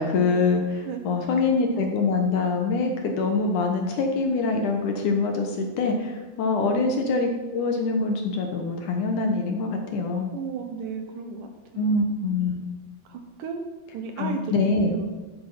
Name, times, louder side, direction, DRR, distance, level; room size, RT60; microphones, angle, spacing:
voice 1, 0.0-10.3 11.8-12.6 14.2-15.0, left 3 dB, 65° left, 3 dB, 2.2 m, -24 dB
voice 2, 10.3-11.9 13.1-13.6 13.9-15.2, right 5 dB, 70° right, 5 dB, 2.2 m, -34 dB
12.0 x 8.4 x 5.8 m, 1.2 s
omnidirectional pair, 4.4 m